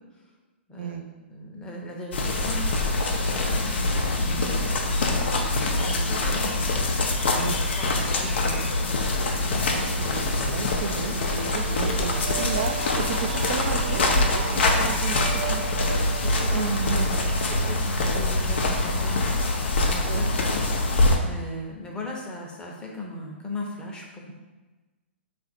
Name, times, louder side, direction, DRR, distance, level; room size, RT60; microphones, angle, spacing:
voice 1, 0.7-4.4 4.9-6.6 7.1-8.9 14.7-15.0 15.5-16.7 17.5-24.3, left 1 dB, 15° left, -2 dB, 0.8 m, -38 dB
sound 1, 2.1-21.2, left 2 dB, 65° left, 0.6 m, -24 dB
sound 2, 6.1-18.9, right 3 dB, 75° right, 0.8 m, -37 dB
voice 2, 9.7-11.1 11.5-14.4 14.8-15.7 16.5-17.3 20.1-20.3, right 7 dB, 55° right, 6 dB, 0.4 m, -33 dB
3.8 x 2.6 x 4.2 m, 1.2 s
hypercardioid pair, 120°, 6 cm